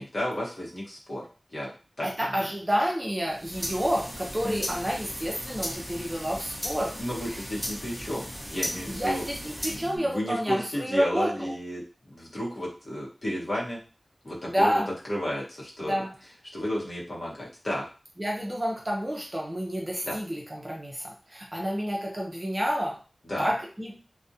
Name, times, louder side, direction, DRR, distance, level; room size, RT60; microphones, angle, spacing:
voice 1, 0.0-1.7 2.0-2.5 4.4-4.7 7.0-9.2 9.6-11.8 12.1-13.8 14.2-16.0 16.5-17.9 20.0-20.2 23.2-23.5, equal, 50° left, -5 dB, 0.8 m, -33 dB
voice 2, 2.0-7.0 8.9-11.5 14.5-14.9 15.9-16.1 18.2-23.0 23.4-23.9, equal, 20° right, -1 dB, 0.5 m, -29 dB
sound 1, 3.3-10.0, equal, 15° left, 0.8 m, -36 dB
2.4 x 2.0 x 2.6 m, 0.35 s
wide cardioid pair, 75°, 0 cm